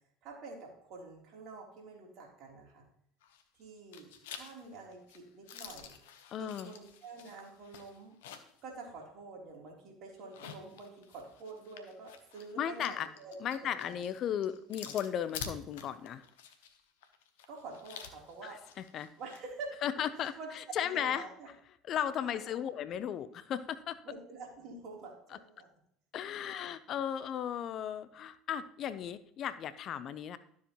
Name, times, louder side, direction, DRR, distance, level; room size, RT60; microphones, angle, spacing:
voice 1, 0.2-2.8 3.6-5.9 6.4-8.2 8.6-14.0 17.5-18.6 19.2-19.7 20.2-20.5 20.8-21.5 22.3-22.6 24.0-25.7 26.3-26.7 27.0-27.1, right 3 dB, 55° right, 0 dB, 3.3 m, -48 dB
sound 1, 3.2-3.6 3.9-8.6 9.0-9.1 10.2-19.5, left 8 dB, 75° left, 0.9 m, -49 dB
voice 2, 6.3-6.7 12.6-13.1 13.4-16.2 18.4-18.5 18.9-19.1 19.8-21.3 21.9-24.0 26.1-30.4, left 9 dB, 50° left, 14 dB, 0.6 m, -35 dB
12.5 x 7.2 x 3.0 m, 0.70 s
hypercardioid pair, 65°, 0 cm